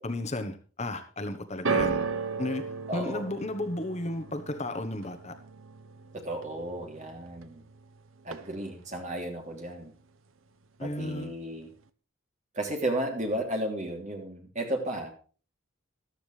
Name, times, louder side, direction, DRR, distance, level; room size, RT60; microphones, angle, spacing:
voice 1, 0.0-2.1 2.4-5.3 10.8-11.3, left 1 dB, 30° left, 7 dB, 1.1 m, -34 dB
sound 1, 1.6-7.9 8.2-8.9 9.6-9.7, right 5 dB, 70° right, 0.8 m, -35 dB
voice 2, 2.9-3.3 6.1-7.6 8.2-9.9 10.8-11.7 12.5-15.1, right 1 dB, 35° right, 2 dB, 3.1 m, -33 dB
14.0 x 12.5 x 3.3 m, 0.38 s
head